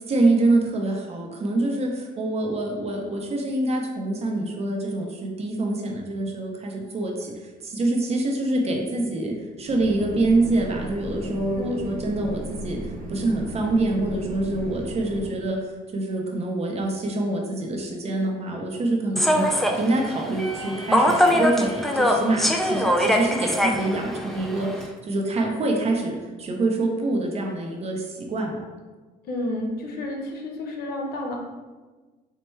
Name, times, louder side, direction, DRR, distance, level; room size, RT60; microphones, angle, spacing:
voice 1, 0.1-28.6, right 2 dB, 40° right, 1 dB, 0.7 m, -26 dB
sound 1, 9.6-15.3, right 1 dB, 55° right, 1.0 m, -36 dB
voice 2, 11.5-11.8 29.3-31.4, left 1 dB, 65° left, 1 dB, 0.8 m, -30 dB
Human voice / Subway metro underground, 19.2-24.9, equal, ahead, 0.3 m, -23 dB
4.3 x 2.2 x 3.1 m, 1.3 s
cardioid pair, 110°, 17 cm